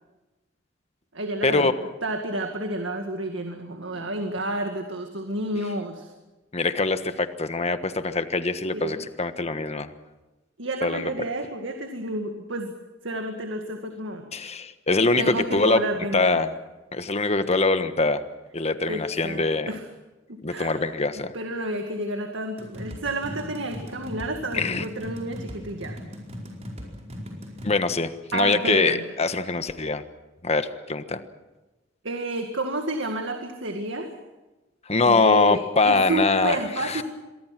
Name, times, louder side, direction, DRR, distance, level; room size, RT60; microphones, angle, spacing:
voice 1, 1.1-1.7 2.0-6.1 8.7-9.0 10.6-12.7 13.0-14.2 15.2-16.5 18.9-19.9 20.3-20.8 21.3-26.0 28.3-29.1 32.0-34.1 35.1-37.0, right 1 dB, 70° right, 5 dB, 2.1 m, -30 dB
voice 2, 6.5-9.9 10.8-11.1 14.3-15.8 16.1-16.5 16.9-18.2 18.5-19.7 20.4-21.3 24.5-24.8 27.6-30.0 30.4-31.2 34.9-37.0, left 3 dB, 35° left, 10 dB, 1.4 m, -23 dB
sound 1, 22.6-27.7, equal, 35° right, 4.7 m, -38 dB
27.0 x 23.5 x 6.1 m, 1.1 s
head